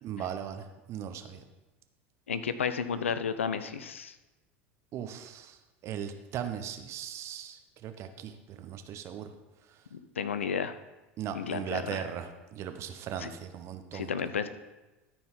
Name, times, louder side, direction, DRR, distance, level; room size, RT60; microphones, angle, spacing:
voice 1, 0.0-1.4 4.9-9.3 11.2-14.1, right 9 dB, 45° right, 7 dB, 1.0 m, -38 dB
voice 2, 2.3-4.1 9.9-10.8 11.3-12.0 13.2-13.3 13.9-14.5, left 6 dB, 85° left, 12 dB, 0.6 m, -32 dB
13.0 x 4.6 x 5.7 m, 1.1 s
hypercardioid pair, 80°, 7 cm